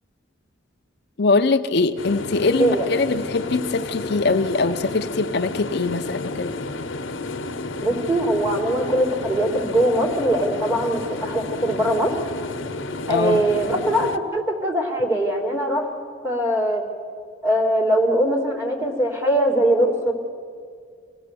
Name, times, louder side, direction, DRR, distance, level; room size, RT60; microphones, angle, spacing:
voice 1, 1.2-6.5 13.1-13.4, left 3 dB, 55° left, 8 dB, 0.6 m, -22 dB
sound 1, 2.0-14.2, left 2 dB, 80° left, 1.0 m, -31 dB
voice 2, 2.6-3.0 7.8-12.1 13.1-15.9 16.2-16.8 17.4-20.1, right 1 dB, 10° right, -1 dB, 3.4 m, -21 dB
26.0 x 17.0 x 6.9 m, 2.1 s
head